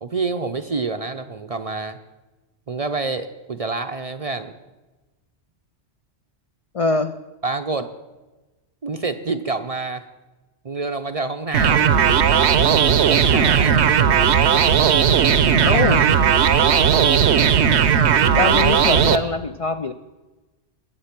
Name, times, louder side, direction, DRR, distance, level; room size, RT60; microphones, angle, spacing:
voice 1, 0.0-2.0 2.7-4.5 7.4-7.9 8.8-10.1 10.6-11.9 13.0-13.9 15.6-16.1, right 3 dB, 45° right, 8 dB, 0.5 m, -27 dB
voice 2, 6.7-7.1 15.6-16.0 18.4-19.9, left 4 dB, 55° left, 9 dB, 0.3 m, -22 dB
sound 1, 11.5-19.2, right 7 dB, 75° right, 1.0 m, -16 dB
21.0 x 7.6 x 5.9 m, 1.2 s
omnidirectional pair, 1.2 m